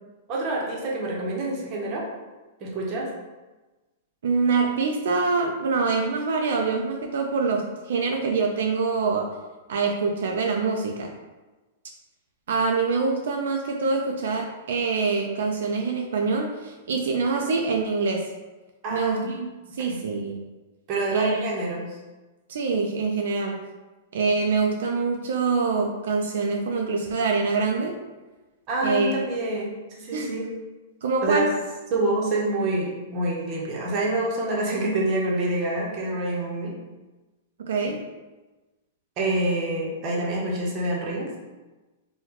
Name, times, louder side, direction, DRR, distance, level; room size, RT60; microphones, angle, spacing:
voice 1, 0.3-2.0 2.6-3.1 18.8-19.3 19.8-20.0 20.9-21.9 28.7-30.5 31.2-31.5 31.9-36.7 39.2-41.3, right 2 dB, 35° right, -3 dB, 0.8 m, -27 dB
voice 2, 4.2-9.3 9.7-11.1 12.5-18.3 18.9-19.5 19.7-20.4 21.1-21.5 22.5-23.6 24.1-28.0 28.8-29.1 30.1-30.4 31.0-31.5 37.7-38.0, right 4 dB, 80° right, 1 dB, 0.3 m, -25 dB
2.9 x 2.2 x 3.7 m, 1.2 s
supercardioid pair, 150°, 0 cm